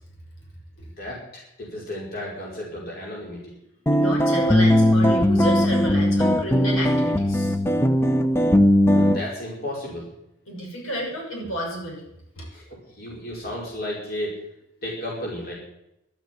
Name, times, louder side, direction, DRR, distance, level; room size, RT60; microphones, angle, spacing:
voice 1, 1.0-3.5 9.0-10.1 12.5-14.5 14.8-15.5, left 1 dB, 50° left, -3 dB, 5.3 m, -33 dB
voice 2, 3.9-7.6 10.5-12.0 12.4-12.5, equal, 85° left, -1 dB, 6.3 m, -31 dB
sound 1, 3.9-9.2, left 1 dB, 10° left, 0.8 m, -19 dB
12.5 x 9.3 x 9.8 m, 0.82 s
head